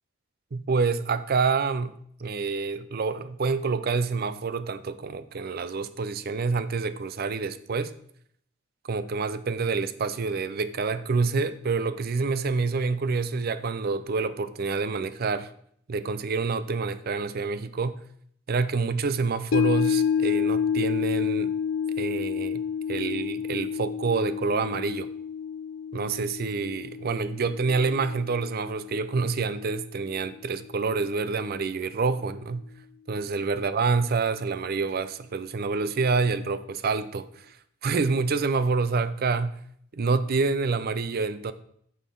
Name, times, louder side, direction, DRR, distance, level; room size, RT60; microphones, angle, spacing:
voice 1, 0.5-7.9 8.9-15.5 15.9-18.0 18.5-21.5 22.0-22.6 22.9-25.1 25.9-32.6 33.1-37.5 37.8-39.6 39.9-41.5, right 4 dB, 50° right, 0.5 m, -27 dB
sound 1, 19.5-29.9 30.3-30.4, left 7 dB, 65° left, 0.3 m, -29 dB
9.1 x 6.5 x 3.8 m
head